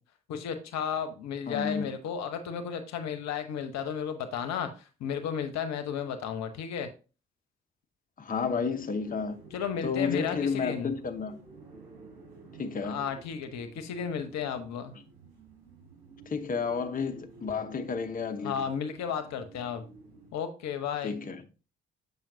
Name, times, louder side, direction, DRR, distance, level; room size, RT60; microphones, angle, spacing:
voice 1, 0.3-6.9 9.5-10.9 12.8-14.9 18.4-19.8 20.3-21.1, left 7 dB, 65° left, 0.9 m, -33 dB
voice 2, 1.5-1.9 8.2-9.4 9.8-11.4 12.6-13.0 16.3-18.7 21.0-21.4, left 5 dB, 30° left, 0.9 m, -31 dB
sound 1, 8.4-20.3, right 3 dB, 85° right, 2.5 m, -51 dB
7.3 x 5.5 x 2.7 m
hypercardioid pair, 45°, 29 cm